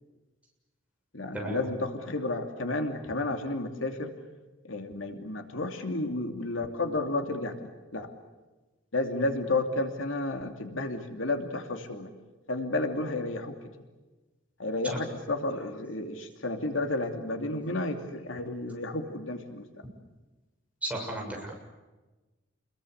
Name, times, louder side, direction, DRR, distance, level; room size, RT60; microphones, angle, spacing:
voice 1, 1.1-4.1 4.6-8.1 8.9-12.1 12.5-13.6 14.6-19.7, left 2 dB, 80° left, 5 dB, 2.8 m, -32 dB
voice 2, 20.8-21.6, right 1 dB, 5° right, -1 dB, 7.1 m, -34 dB
29.5 x 21.5 x 8.3 m, 1.2 s
head